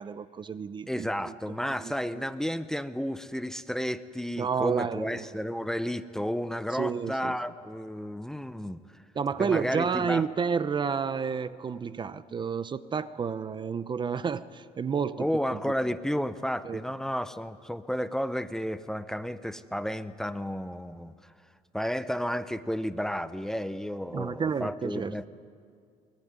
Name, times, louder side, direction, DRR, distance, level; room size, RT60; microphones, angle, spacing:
voice 1, 0.0-1.1 1.8-2.2 4.4-5.3 6.7-7.3 9.1-15.6 16.6-16.8 24.1-25.1, right 6 dB, 30° right, 14 dB, 0.7 m, -30 dB
voice 2, 0.9-8.8 9.4-10.2 15.2-21.1 21.7-25.3, equal, 5° left, 12 dB, 0.8 m, -32 dB
22.5 x 21.0 x 9.6 m, 2.2 s
cardioid pair, 115°, 15 cm